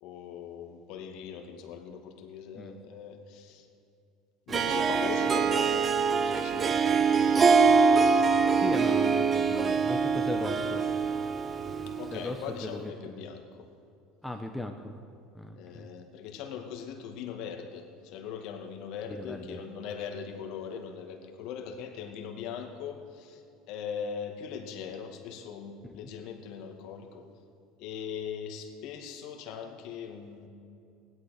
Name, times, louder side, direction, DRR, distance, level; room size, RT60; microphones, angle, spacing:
voice 1, 0.0-3.7 4.5-7.3 11.9-13.7 15.5-27.2 27.8-30.5, left 7 dB, 65° left, 4 dB, 2.2 m, -40 dB
Harp, 4.5-12.2, right 5 dB, 30° right, 0.9 m, -24 dB
voice 2, 8.5-10.8 12.1-12.9 14.2-14.9 15.3-15.9 19.2-19.6 25.8-26.1, left 1 dB, 5° left, 4 dB, 1.0 m, -38 dB
16.5 x 11.5 x 6.6 m, 2.6 s
supercardioid pair, 105°, 0 cm